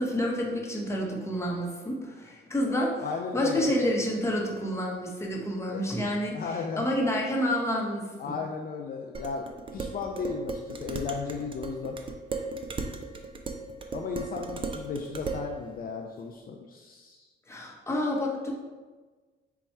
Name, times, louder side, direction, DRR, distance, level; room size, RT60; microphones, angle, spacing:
voice 1, 0.0-3.0 3.3-6.4 6.8-8.1 17.5-18.5, equal, 15° left, -2 dB, 0.9 m, -29 dB
voice 2, 3.0-3.7 5.7-5.8 6.3-7.0 8.2-12.0 13.9-17.3, left 5 dB, 50° left, 1 dB, 0.4 m, -35 dB
Dishes pots and pans, 9.1-15.5, right 3 dB, 25° right, 0.4 m, -36 dB
4.1 x 2.3 x 4.4 m, 1.3 s
cardioid pair, 90°, 20 cm